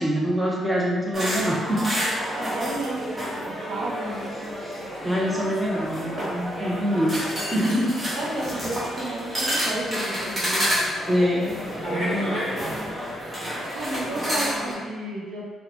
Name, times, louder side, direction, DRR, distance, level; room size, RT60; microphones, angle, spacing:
voice 1, 0.0-1.8 5.0-7.9 11.1-12.4, equal, 5° right, -4 dB, 0.7 m, -25 dB
sound 1, 1.1-14.7, equal, 25° right, 1.1 m, -29 dB
voice 2, 2.4-3.1 3.5-4.3 5.0-5.4 6.1-6.3 6.7-7.0 8.1-11.0 12.0-12.3 13.7-15.4, right 1 dB, 75° right, -4 dB, 0.7 m, -33 dB
3.8 x 2.1 x 2.9 m, 1.4 s
cardioid pair, 90°, 0 cm